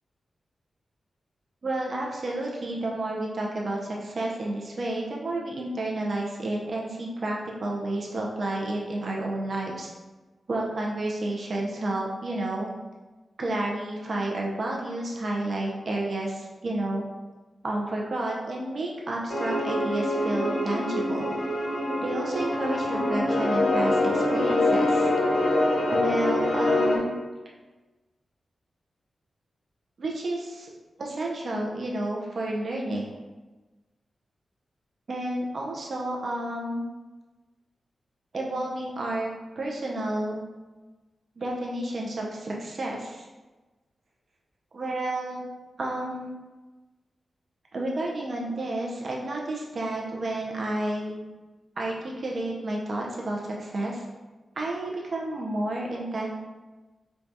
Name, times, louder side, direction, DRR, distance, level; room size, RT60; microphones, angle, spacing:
voice 1, 1.6-9.9 10.5-12.7 13.4-17.0 17.6-21.3 22.0-25.1 25.9-27.1 30.0-30.7 31.0-33.0 35.1-36.9 38.3-40.4 41.4-43.3 44.7-45.5 45.8-46.3 47.7-51.2 51.8-54.1 54.6-56.3, right 1 dB, 55° right, -2 dB, 0.5 m, -31 dB
sound 1, 19.3-27.0, left 1 dB, 60° left, 1.0 m, -25 dB
4.5 x 2.3 x 2.6 m, 1.2 s
wide cardioid pair, 100°, 0 cm